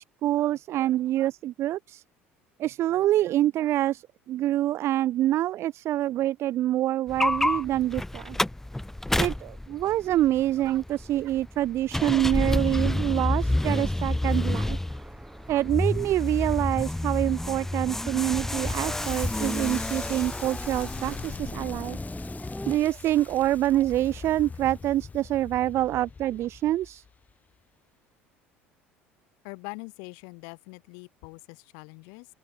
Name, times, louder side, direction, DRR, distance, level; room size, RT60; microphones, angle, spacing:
voice 1, 0.0-2.0 2.6-8.4 9.2-14.8 15.5-22.0 22.7-27.0, right 13 dB, 40° right, 0.4 m, -26 dB
sound 1, 7.1-22.8, left 1 dB, 5° left, 0.6 m, -29 dB
sound 2, 14.3-21.1 21.5-21.6, right 3 dB, 15° right, 3.7 m, -57 dB
Crackle, 18.3-27.3, left 5 dB, 25° left, 5.2 m, -41 dB
voice 2, 29.4-32.3, left 40 dB or more, 55° left, 1.0 m, -43 dB
open air
figure-of-eight pair, 65°, 7 cm